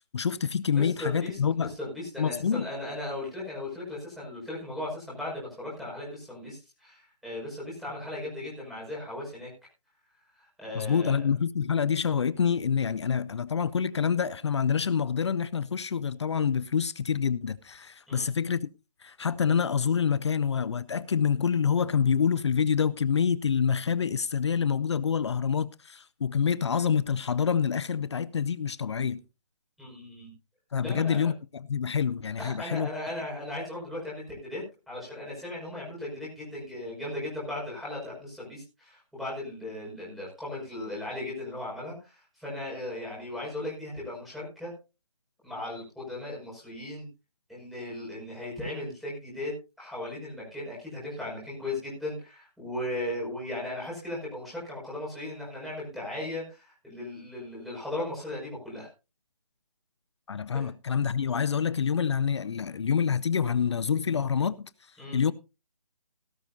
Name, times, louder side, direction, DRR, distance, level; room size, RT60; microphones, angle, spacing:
voice 1, 0.1-1.7 2.2-2.7 10.7-18.7 19.0-29.2 30.7-32.9 60.3-64.7 65.1-65.3, left 7 dB, 45° left, 0.5 m, -27 dB
voice 2, 0.7-9.5 10.2-11.3 18.1-18.3 29.8-30.3 30.8-31.3 32.4-44.7 45.4-47.1 47.5-58.9 60.5-60.7 65.0-65.2, left 1 dB, ahead, 5.4 m, -37 dB
17.0 x 12.5 x 2.7 m
figure-of-eight pair, 155°, 20 cm